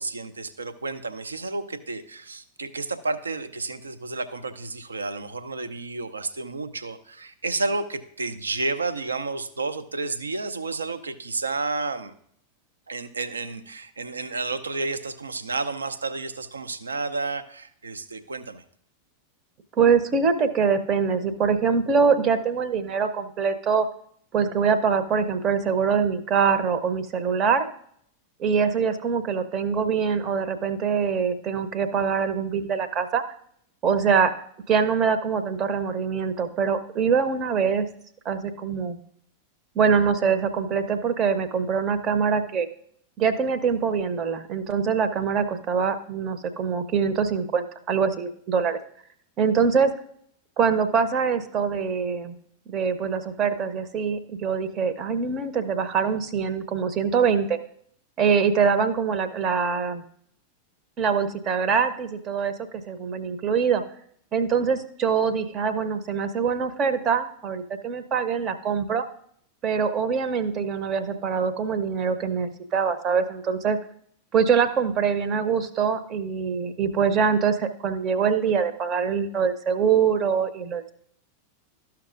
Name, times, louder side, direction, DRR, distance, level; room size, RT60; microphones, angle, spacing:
voice 1, 0.0-12.1 12.9-18.6, right 3 dB, 75° right, 10 dB, 0.5 m, -31 dB
voice 2, 19.8-23.9 24.3-27.7 28.4-33.2 33.8-34.3 34.7-37.9 38.2-39.0 39.7-42.7 43.2-48.8 49.4-49.9 50.6-52.3 52.7-57.6 58.2-60.0 61.0-62.5 62.9-63.8 64.3-69.0 69.6-73.8 74.3-80.9, right 6 dB, 30° right, 10 dB, 0.7 m, -24 dB
13.0 x 5.8 x 2.5 m, 0.65 s
figure-of-eight pair, 90°, 0 cm